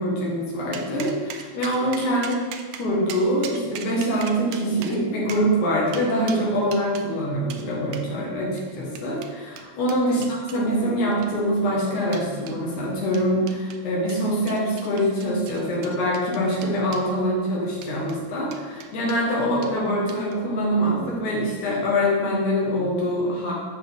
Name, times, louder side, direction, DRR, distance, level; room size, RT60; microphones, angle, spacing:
voice 1, 0.0-2.4 2.8-23.5, equal, 85° left, -4 dB, 3.0 m, -24 dB
sound 1, 0.7-7.1 7.5-7.6 7.9-8.1 8.6-10.6 11.1-11.6 12.1-12.6 13.1-13.8 14.1-17.1 17.7-18.2 18.5-19.2 19.6-19.8 20.1-20.4, right 8 dB, 90° right, 1.3 m, -40 dB
7.3 x 6.8 x 3.5 m, 1.5 s
omnidirectional pair, 3.4 m